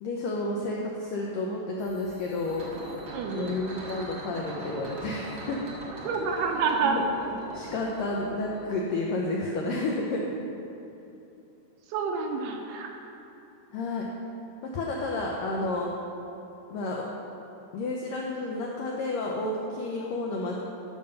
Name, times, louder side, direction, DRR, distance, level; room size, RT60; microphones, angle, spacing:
voice 1, 0.0-2.6 3.3-5.6 6.8-7.0 7.5-10.2 13.7-14.1 14.7-15.9 16.7-17.0 17.7-20.6, left 2 dB, 85° left, -2 dB, 1.9 m, -31 dB
sound 1, 1.8-8.8, right 2 dB, 50° right, 1.5 m, -42 dB
voice 2, 3.1-3.6 5.9-7.0 11.9-12.9, right 5 dB, 80° right, 2 dB, 2.4 m, -28 dB
11.0 x 5.2 x 6.7 m, 2.9 s
omnidirectional pair, 4.9 m